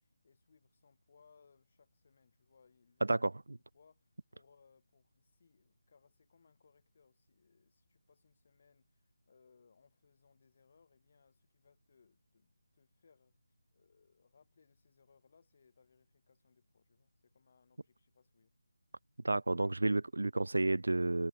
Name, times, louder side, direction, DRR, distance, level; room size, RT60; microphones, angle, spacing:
voice 1, 0.0-3.2 3.5-13.4 13.7-18.5, left 5 dB, 40° left, 6.2 m, -69 dB
voice 2, 19.2-21.3, right 2 dB, 65° right, 0.4 m, -31 dB
figure-of-eight pair, 155°, 0 cm